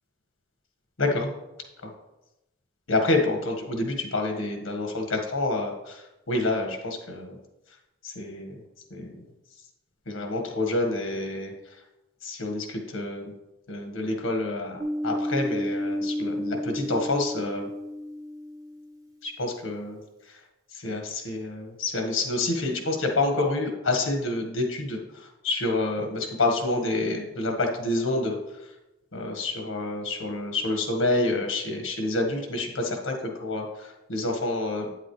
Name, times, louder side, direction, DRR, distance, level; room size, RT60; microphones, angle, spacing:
voice 1, 1.0-1.3 1.8-1.9 2.9-7.4 8.0-8.6 8.9-9.2 10.1-11.5 12.2-13.3 13.7-17.7 19.2-20.0 20.3-20.4 20.7-28.4 29.1-34.9, left 2 dB, 85° left, 3 dB, 1.6 m, -28 dB
sound 1, 14.8-19.1, left 1 dB, 20° right, 0.9 m, -31 dB
8.9 x 7.7 x 3.2 m, 0.98 s
head